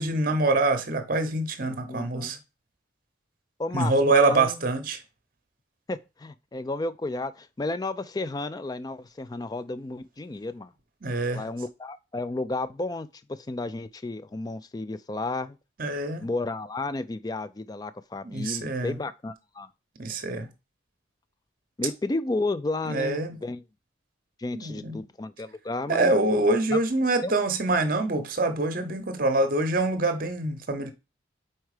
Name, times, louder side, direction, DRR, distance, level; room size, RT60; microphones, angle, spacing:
voice 1, 0.0-2.4 3.7-5.0 11.0-11.4 15.8-16.2 18.2-19.0 20.0-20.5 22.9-23.4 24.5-25.0 25.9-30.9, right 2 dB, 45° right, 0.8 m, -25 dB
voice 2, 1.9-2.3 3.6-4.6 5.9-10.7 11.3-15.6 16.2-19.7 21.8-23.6 24.4-26.1 26.7-26.8 27.2-27.3, left 2 dB, 20° left, 0.3 m, -32 dB
4.6 x 4.4 x 4.9 m
head